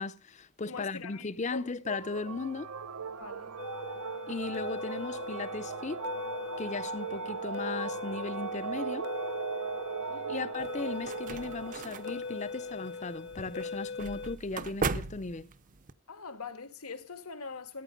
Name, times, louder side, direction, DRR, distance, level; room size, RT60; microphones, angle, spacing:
voice 1, 0.0-2.7 4.3-6.0 6.6-9.1 10.3-15.5, left 3 dB, 30° left, 0.6 m, -37 dB
voice 2, 0.7-1.7 3.2-3.5 10.1-10.5 16.1-17.8, left 4 dB, 80° left, 1.6 m, -43 dB
sound 1, 1.8-13.7, right 6 dB, 90° right, 0.8 m, -39 dB
sound 2, 3.6-14.4, left 5 dB, 50° left, 1.0 m, -41 dB
sound 3, 10.6-15.9, right 4 dB, 35° right, 0.6 m, -38 dB
14.0 x 9.8 x 5.2 m
head